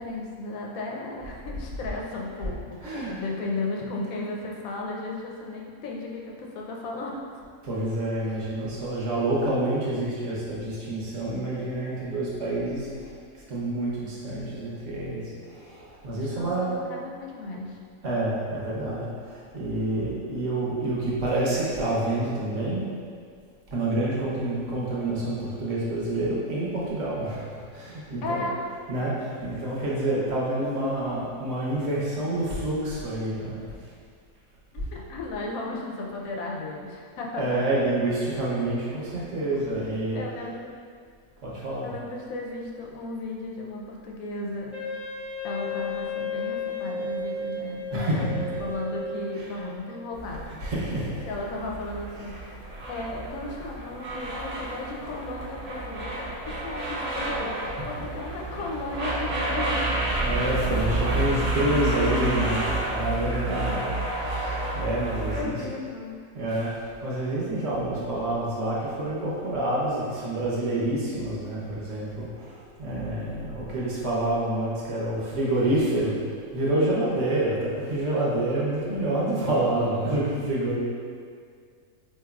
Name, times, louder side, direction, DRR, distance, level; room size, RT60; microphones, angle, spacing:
voice 1, 0.0-7.2 8.3-8.4 16.1-17.8 28.2-28.6 34.7-37.4 40.1-40.7 41.8-44.8 45.4-50.5 51.2-52.6 52.9-60.0 63.1-63.2 64.7-64.8 65.3-66.2, left 2 dB, 85° left, -1 dB, 1.0 m, -35 dB
voice 2, 2.8-3.2 7.6-16.8 18.0-22.8 23.7-28.4 28.7-33.6 37.4-40.5 41.4-41.9 47.9-48.7 49.3-49.6 50.4-51.3 52.1-52.4 57.8-57.9 60.2-65.7 66.3-76.2 76.5-80.8, right 1 dB, 65° right, -6 dB, 1.2 m, -28 dB
Wind instrument woodwind instrument, 44.7-49.8, left 2 dB, 50° left, 0.4 m, -33 dB
sound 1, 50.1-65.4, right 2 dB, 90° right, 0.3 m, -30 dB
4.5 x 3.0 x 2.3 m, 2.1 s
omnidirectional pair, 1.4 m